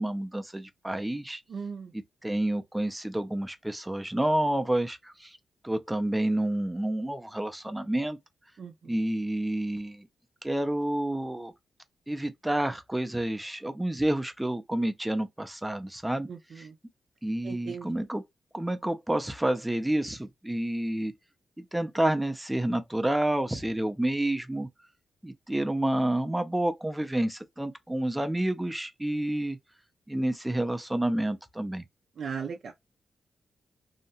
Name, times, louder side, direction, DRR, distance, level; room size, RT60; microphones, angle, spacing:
voice 1, 0.0-1.4 1.9-5.4 5.6-8.2 8.8-10.1 10.4-11.5 12.1-16.3 16.6-16.7 17.2-18.2 18.5-21.1 21.6-24.7 25.2-29.6 30.1-31.8, right 1 dB, 10° right, 0.4 m, -29 dB
voice 2, 1.5-1.9 8.6-8.9 16.3-16.7 17.4-17.9 32.2-32.7, right 6 dB, 60° right, 0.4 m, -37 dB
2.8 x 2.2 x 2.7 m
wide cardioid pair, 120°, 0 cm